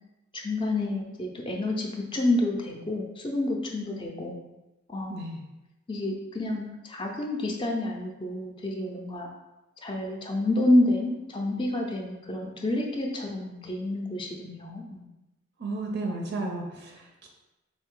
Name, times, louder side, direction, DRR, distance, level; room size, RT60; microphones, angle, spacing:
voice 1, 0.4-4.4 4.9-5.4 5.9-9.3 9.8-15.0, left 1 dB, 25° left, 1 dB, 0.4 m, -28 dB
voice 2, 5.1-5.4 15.6-17.3, right 2 dB, 50° right, 1 dB, 0.4 m, -33 dB
3.8 x 2.6 x 3.7 m, 1.0 s
head